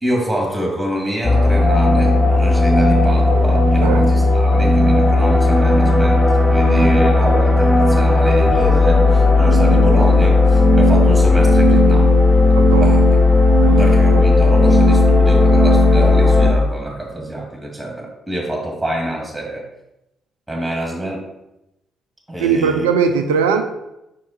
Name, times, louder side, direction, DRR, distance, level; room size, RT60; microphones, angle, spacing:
voice 1, 0.0-12.1 12.8-13.0 13.7-19.7 20.5-21.2 22.3-22.9, right 1 dB, 15° right, 0 dB, 2.0 m, -25 dB
sound 1, 1.2-16.5, left 2 dB, 20° left, 1.4 m, -13 dB
voice 2, 12.5-12.9 13.6-13.9 22.4-23.6, right 6 dB, 85° right, 6 dB, 0.5 m, -19 dB
4.8 x 4.5 x 4.4 m, 0.89 s
hypercardioid pair, 45°, 0 cm